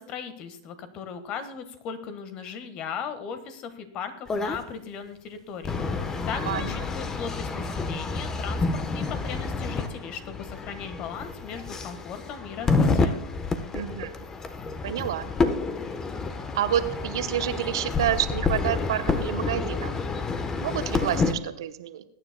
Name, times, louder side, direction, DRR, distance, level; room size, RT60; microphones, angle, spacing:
voice 1, 0.0-5.8 6.3-13.2, left 7 dB, 45° left, 10 dB, 1.5 m, -37 dB
sound 1, 4.3-4.6 5.6-21.3, left 4 dB, 20° left, 1.0 m, -29 dB
voice 2, 13.7-14.2 14.8-15.3 16.5-19.9 20.6-22.0, right 11 dB, 70° right, 10 dB, 0.9 m, -28 dB
21.0 x 9.7 x 2.2 m, 0.75 s
hypercardioid pair, 100°, 2 cm